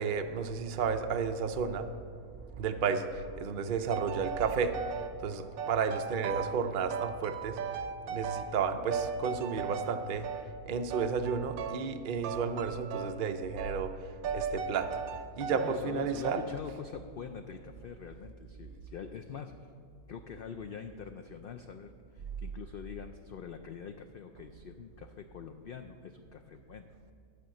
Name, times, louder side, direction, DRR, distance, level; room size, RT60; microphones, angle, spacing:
voice 1, 0.0-1.9 2.4-10.3 10.7-15.0 15.4-16.4, right 5 dB, 60° right, 7 dB, 0.5 m, -32 dB
sound 1, 3.9-5.1 5.6-6.6 6.9-8.6 8.9-10.5 10.9-12.0 12.2-13.2 13.6-13.8 14.2-15.8 16.2-16.6, right 6 dB, 80° right, 1.1 m, -37 dB
voice 2, 15.5-19.7 20.1-26.9, left 7 dB, 80° left, 7 dB, 0.5 m, -44 dB
11.5 x 5.2 x 7.5 m, 2.2 s
omnidirectional pair, 1.5 m